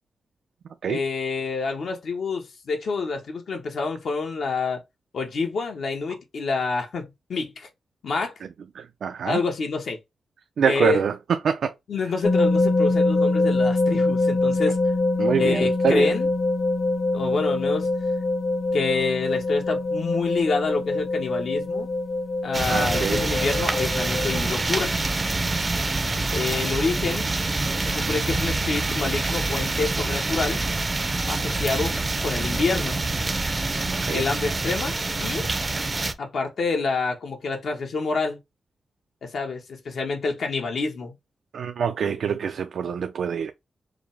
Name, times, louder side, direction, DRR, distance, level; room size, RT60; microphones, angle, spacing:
voice 1, 0.9-4.8 5.1-7.7 8.0-8.3 9.2-10.0 10.7-11.0 11.9-14.9 15.3-16.3 17.1-17.9 18.7-21.9 22.4-24.9 26.3-27.3 27.8-30.6 31.3-33.0 34.1-35.5 36.2-38.4 39.2-41.2, left 4 dB, 70° left, 0.9 m, -27 dB
voice 2, 8.8-9.4 10.6-11.7 15.2-16.1 22.7-23.2 28.8-28.9 33.9-34.2 41.5-43.5, right 7 dB, 85° right, 0.4 m, -25 dB
sound 1, 12.2-24.4, left 2 dB, 35° left, 0.6 m, -24 dB
sound 2, 22.5-36.1, right 2 dB, 25° right, 0.5 m, -26 dB
4.9 x 2.0 x 3.4 m
wide cardioid pair, 170°, 0 cm